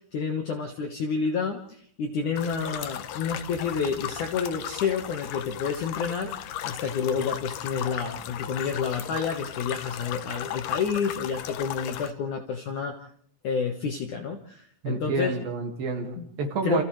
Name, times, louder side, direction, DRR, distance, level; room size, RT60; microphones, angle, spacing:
voice 1, 0.1-6.3 6.6-13.0 13.4-15.3 16.2-16.3 16.6-16.8, left 6 dB, 60° left, 3 dB, 2.2 m, -29 dB
sound 1, 2.4-12.1, left 11 dB, 80° left, 1.9 m, -36 dB
voice 2, 14.8-16.8, right 4 dB, 55° right, 4 dB, 3.5 m, -29 dB
29.5 x 28.5 x 3.3 m, 0.64 s
omnidirectional pair, 5.3 m